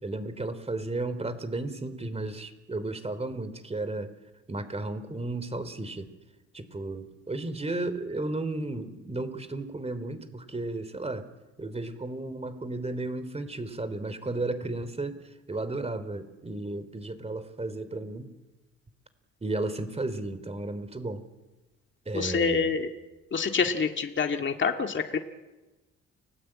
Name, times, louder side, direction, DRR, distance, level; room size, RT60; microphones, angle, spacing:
voice 1, 0.0-4.1 4.5-6.1 6.5-11.3 11.6-15.2 15.5-18.3 19.4-21.2 22.0-22.7, right 2 dB, 20° right, 12 dB, 3.3 m, -34 dB
voice 2, 22.1-22.9 23.3-25.2, left 5 dB, 40° left, 4 dB, 2.1 m, -27 dB
29.5 x 19.0 x 8.7 m, 1.1 s
cardioid pair, 90°, 30 cm